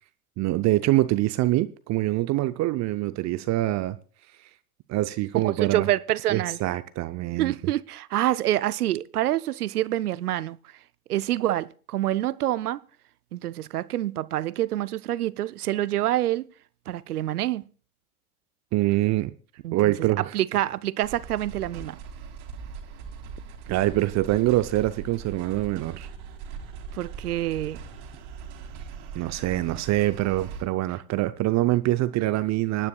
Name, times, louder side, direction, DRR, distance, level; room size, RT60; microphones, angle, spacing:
voice 1, 0.4-4.0 4.9-5.9 6.3-7.5 18.7-19.3 19.7-20.3 23.7-26.1 29.1-32.9, right 16 dB, 40° right, 0.6 m, -24 dB
voice 2, 5.3-6.6 7.4-10.6 11.1-12.8 13.3-16.5 16.9-17.6 19.6-20.1 20.3-22.0 26.9-27.8, right 14 dB, 90° right, 0.5 m, -27 dB
sound 1, 21.0-30.6, right 6 dB, 60° right, 2.7 m, -40 dB
27.0 x 9.6 x 2.3 m
hypercardioid pair, 80°, 44 cm